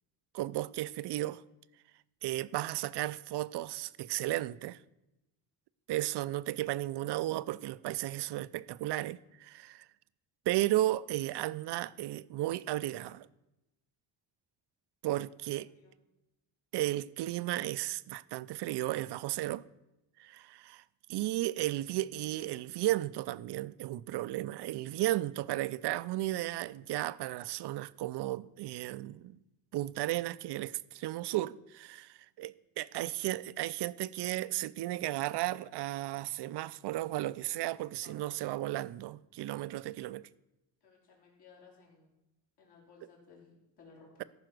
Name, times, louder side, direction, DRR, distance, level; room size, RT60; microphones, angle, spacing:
voice 1, 0.3-1.4 2.2-4.8 5.9-9.9 10.5-13.3 15.0-15.7 16.7-19.6 20.2-20.8 21.1-29.4 29.7-40.3, right 16 dB, 70° right, 0.5 m, -34 dB
voice 2, 15.5-15.9 38.0-38.2 40.8-42.1 42.6-44.3, left 4 dB, 65° left, 3.7 m, -59 dB
14.0 x 5.6 x 6.1 m
cardioid pair, 135°, 42 cm